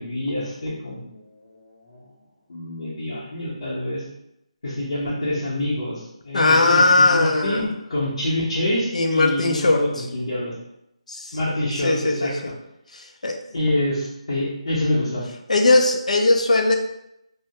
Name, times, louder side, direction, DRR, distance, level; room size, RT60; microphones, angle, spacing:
voice 1, 0.0-2.0 2.5-4.0 4.6-6.9 7.1-10.5 11.3-12.3 13.5-15.2, left 1 dB, 60° left, -8 dB, 0.8 m, -26 dB
voice 2, 6.3-7.6 8.9-9.8 11.1-11.4 11.8-12.5 12.9-13.4 15.5-16.8, left 2 dB, 85° left, 4 dB, 0.4 m, -19 dB
2.2 x 2.2 x 2.8 m, 0.81 s
hypercardioid pair, 170°, 4 cm